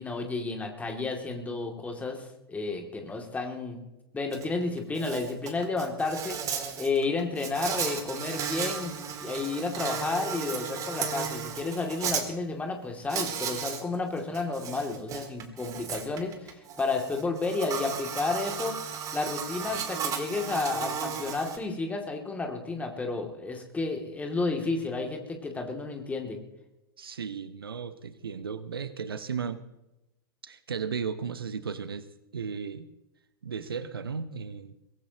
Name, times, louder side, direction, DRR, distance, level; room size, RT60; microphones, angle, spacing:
voice 1, 0.0-3.8 4.1-18.8 19.1-26.4, left 3 dB, 10° left, 3 dB, 2.7 m, -31 dB
Insect, 4.3-4.4 4.8-12.2 13.1-13.8 14.2-21.6, right 7 dB, 25° right, 2.0 m, -35 dB
voice 2, 27.0-29.6 30.4-32.1 32.3-32.9 33.4-34.7, right 6 dB, 70° right, 13 dB, 1.0 m, -35 dB
23.0 x 18.0 x 3.0 m, 0.94 s
figure-of-eight pair, 95°, 13 cm